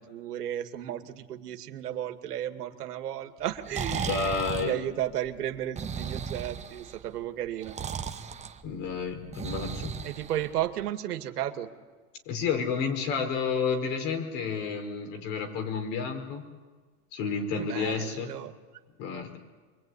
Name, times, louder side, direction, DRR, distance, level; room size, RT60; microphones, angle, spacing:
voice 1, 0.0-7.8 10.0-11.7 17.6-18.5, right 11 dB, 90° right, 7 dB, 2.3 m, -34 dB
Breathing, 3.4-10.9, right 6 dB, 15° right, 1.2 m, -36 dB
voice 2, 3.9-4.7 8.6-9.9 12.3-16.4 17.1-18.3 19.0-19.4, left 5 dB, 55° left, 5 dB, 5.4 m, -30 dB
26.0 x 23.0 x 9.9 m, 1.4 s
supercardioid pair, 130°, 45 cm